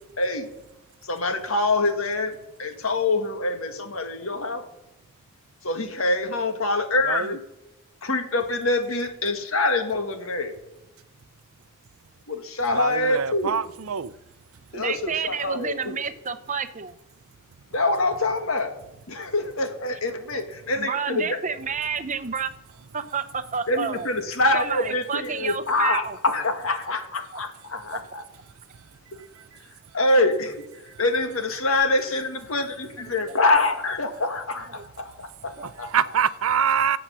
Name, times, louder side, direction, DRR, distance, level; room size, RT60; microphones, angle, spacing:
voice 1, 0.2-0.5 1.0-4.7 5.6-7.4 8.0-10.6 12.3-13.5 14.7-16.0 17.7-18.7 19.1-21.4 23.7-28.2 29.1-29.2 29.9-30.6 31.0-35.9, left 2 dB, 70° left, 1.7 m, -25 dB
voice 2, 12.7-14.1 35.9-37.0, right 7 dB, 70° right, 0.6 m, -24 dB
voice 3, 14.7-17.0 20.7-22.5 22.9-24.1 24.5-26.2 27.3-27.4 27.7-28.0 33.3-33.4 34.7-34.8 35.6-35.7, right 6 dB, 35° right, 0.8 m, -30 dB
16.5 x 8.0 x 6.2 m
head